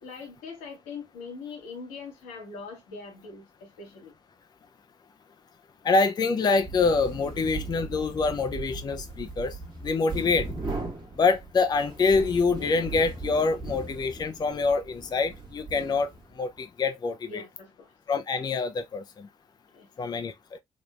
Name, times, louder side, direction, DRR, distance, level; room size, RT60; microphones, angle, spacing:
voice 1, 0.0-4.1 17.3-17.9 19.7-19.9, left 4 dB, 80° left, 1.2 m, -42 dB
voice 2, 5.8-9.6 9.8-10.5 11.2-16.1 16.4-17.4 18.1-19.3 20.0-20.3, left 4 dB, 30° left, 0.4 m, -25 dB
sound 1, 6.5-16.4, right 3 dB, 35° right, 1.3 m, -38 dB
3.4 x 2.5 x 2.2 m
hypercardioid pair, 50°, 14 cm